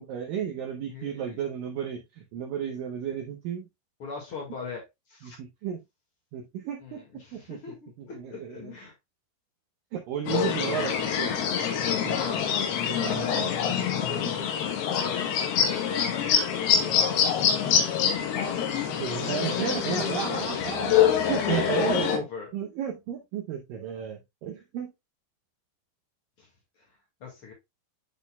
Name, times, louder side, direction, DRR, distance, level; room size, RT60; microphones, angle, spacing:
voice 1, 0.0-3.7 5.2-5.8 6.3-7.6 8.0-8.7 9.9-11.4 12.0-12.2 12.9-13.9 19.0-22.2 22.5-24.9, right 8 dB, 85° right, 2.0 m, -33 dB
voice 2, 0.9-1.4 4.0-5.4 6.8-8.9 12.2-12.5 13.0-13.5 14.0-14.6 14.9-17.1 18.0-18.9 19.3-19.8 21.7-22.5 26.4-26.5 26.8-26.9 27.2-27.5, left 5 dB, 50° left, 1.8 m, -39 dB
sound 1, 10.3-22.2, left 8 dB, 70° left, 2.9 m, -25 dB
10.5 x 4.2 x 2.2 m
omnidirectional pair, 5.1 m